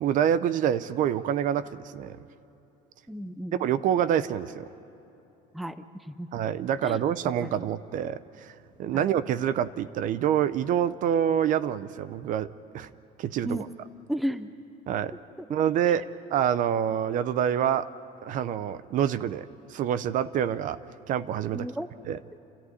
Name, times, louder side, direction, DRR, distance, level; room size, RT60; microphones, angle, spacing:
voice 1, 0.0-2.2 3.6-4.7 6.3-12.5 12.7-12.9 13.2-13.7 14.9-15.1 15.5-17.9 18.2-20.8 21.1-21.7 22.1-22.2, right 9 dB, 50° right, 16 dB, 0.6 m, -27 dB
voice 2, 3.1-3.6 5.5-6.3 6.8-7.0 7.4-7.7 8.9-9.0 13.4-13.7 14.1-14.5 15.9-16.1 21.5-21.9, equal, ahead, 12 dB, 0.5 m, -34 dB
28.5 x 14.0 x 9.6 m, 2.9 s
cardioid pair, 160°, 17 cm